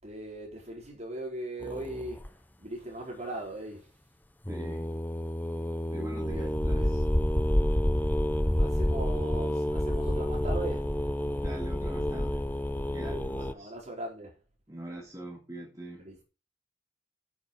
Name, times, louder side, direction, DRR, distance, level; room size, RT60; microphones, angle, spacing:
voice 1, 0.0-2.3 2.6-3.9 6.2-7.0 8.6-10.9 13.0-14.4 16.0-16.2, right 1 dB, 35° right, 4.4 m, -39 dB
sound 1, 1.6-2.3 4.4-13.5, left 1 dB, 10° left, 0.6 m, -29 dB
voice 2, 4.5-4.9 5.9-7.0 11.4-12.5 12.9-13.7 14.7-16.1, right 1 dB, 15° right, 2.0 m, -43 dB
8.3 x 7.7 x 5.5 m
head